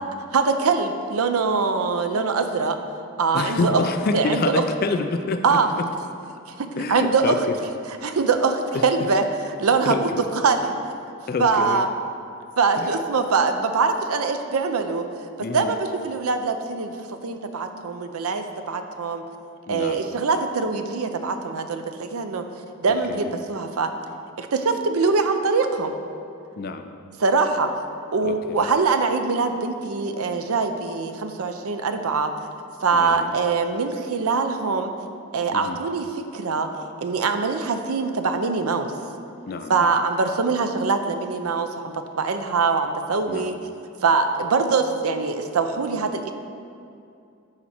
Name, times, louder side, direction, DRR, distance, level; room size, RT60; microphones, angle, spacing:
voice 1, 0.3-2.8 3.2-3.8 4.1-4.6 5.4-5.7 6.5-7.3 8.0-9.3 9.6-10.1 10.4-10.8 11.4-11.9 12.6-15.1 15.5-17.0 17.2-19.2 19.7-22.4 22.8-23.9 24.4-25.9 27.2-27.7 28.1-32.3 32.8-34.9 35.3-36.1 36.3-36.7 37.0-38.9 39.7-43.6 44.0-46.3, right 4 dB, 80° right, 7 dB, 0.6 m, -23 dB
voice 2, 3.3-5.8 6.8-7.6 8.7-8.8 9.8-10.3 11.3-11.8 12.8-12.9 15.4-15.7 19.7-20.1 23.1-23.3 26.6-26.9 28.2-28.7 32.9-33.3 35.5-35.8 39.5-39.9 43.3-43.6, left 3 dB, 40° left, 8 dB, 0.4 m, -27 dB
11.5 x 4.2 x 4.3 m, 2.5 s
head